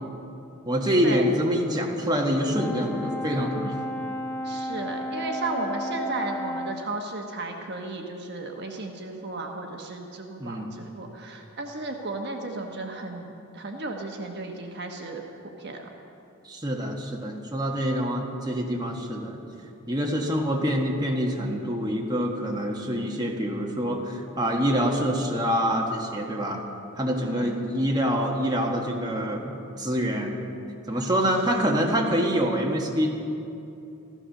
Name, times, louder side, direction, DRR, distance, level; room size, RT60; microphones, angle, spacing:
voice 1, 0.7-3.8 10.4-10.7 16.4-19.4 19.9-26.6 27.0-30.4 30.9-33.1, equal, 20° right, 0 dB, 1.5 m, -26 dB
Brass instrument, 2.5-6.9, equal, 10° left, 0.5 m, -33 dB
voice 2, 4.4-15.2 15.6-15.9 27.1-27.6, right 2 dB, 50° right, 2 dB, 1.3 m, -34 dB
15.0 x 13.5 x 6.6 m, 2.8 s
head